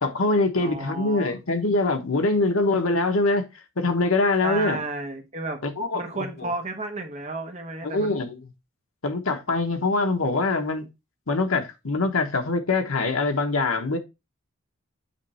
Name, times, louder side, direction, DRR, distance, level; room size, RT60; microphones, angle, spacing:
voice 1, 0.0-3.4 3.8-4.8 5.6-6.0 6.4-6.5 7.8-8.4 9.0-10.9 11.3-14.0, left 3 dB, 80° left, 1.2 m, -23 dB
voice 2, 0.6-1.3 4.4-5.6 5.9-8.3, right 2 dB, 30° right, 1.2 m, -32 dB
8.4 x 3.2 x 4.3 m
head